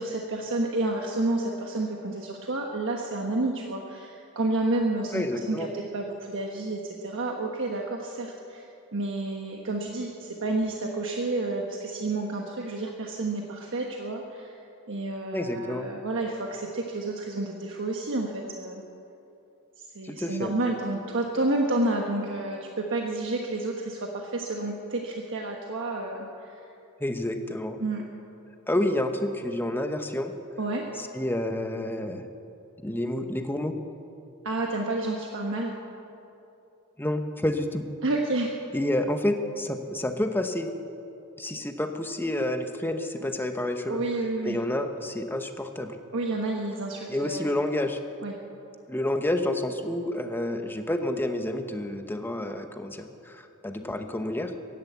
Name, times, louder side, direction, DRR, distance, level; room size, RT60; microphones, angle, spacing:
voice 1, 0.0-8.6 8.9-14.6 14.9-18.8 19.8-26.6 27.8-28.0 30.6-30.9 34.4-35.7 38.0-38.5 43.9-44.6 46.1-47.5 48.2-48.3, right 2 dB, 60° right, 1 dB, 1.3 m, -30 dB
voice 2, 5.1-5.7 15.3-15.9 20.0-20.5 27.0-27.8 28.7-30.3 31.0-32.2 32.8-33.7 37.0-37.9 38.7-40.7 41.4-44.0 44.4-46.0 47.1-48.0 48.9-54.5, left 1 dB, 10° left, 6 dB, 0.9 m, -29 dB
15.5 x 11.0 x 8.1 m, 2.8 s
head